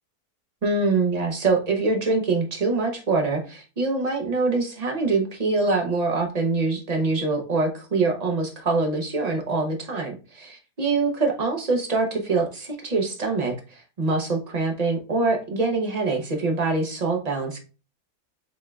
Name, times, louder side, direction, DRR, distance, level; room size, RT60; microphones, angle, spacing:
voice 1, 0.6-10.1 10.8-17.6, right 3 dB, 35° right, 2 dB, 0.7 m, -24 dB
5.2 x 3.7 x 2.3 m, 0.33 s
omnidirectional pair, 1.6 m